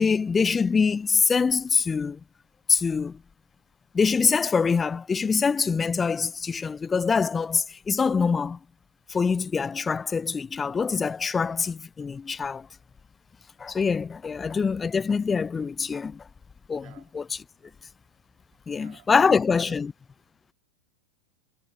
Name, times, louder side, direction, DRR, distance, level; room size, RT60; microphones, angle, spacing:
voice 1, 0.0-2.2 2.7-3.2 3.9-8.6 9.1-12.7 13.6-16.2 16.7-17.2 18.7-19.9, left 5 dB, 15° left, 0.7 m, -24 dB
voice 2, 16.8-17.1 17.6-17.7 18.8-19.3 19.6-19.8, right 30 dB, 45° right, 4.8 m, -53 dB
figure-of-eight pair, 90°, 0 cm